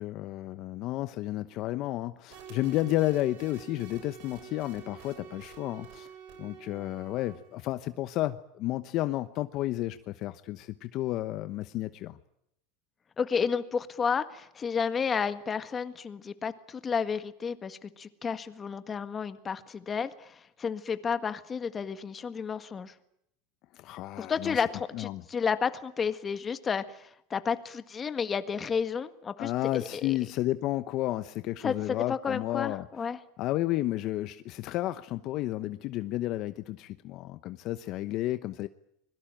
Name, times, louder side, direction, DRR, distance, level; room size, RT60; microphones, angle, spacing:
voice 1, 0.0-6.1 6.4-12.2 23.7-24.6 24.9-25.2 29.4-32.8 33.4-38.7, left 15 dB, 50° left, 12 dB, 1.0 m, -32 dB
sound 1, 2.3-7.7, right 7 dB, 70° right, 7.6 m, -48 dB
voice 2, 13.2-22.9 24.2-30.3 31.6-33.2, left 6 dB, 20° left, 11 dB, 1.7 m, -32 dB
25.0 x 22.5 x 8.9 m, 0.75 s
supercardioid pair, 140°, 0 cm